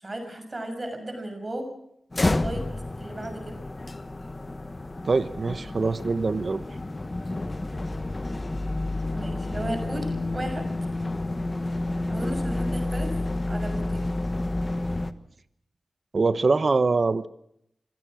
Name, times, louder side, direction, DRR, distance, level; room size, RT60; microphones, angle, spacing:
voice 1, 0.0-1.7 2.2-2.7 3.0-3.6 9.1-10.7 12.1-13.1 13.5-14.0, right 1 dB, 35° right, 6 dB, 6.2 m, -35 dB
sound 1, 2.1-15.1, left 2 dB, 30° left, 1.2 m, -30 dB
voice 2, 5.0-6.6 16.1-17.3, right 3 dB, 55° right, 12 dB, 0.9 m, -23 dB
25.0 x 17.0 x 6.2 m, 0.76 s
wide cardioid pair, 75°, 0 cm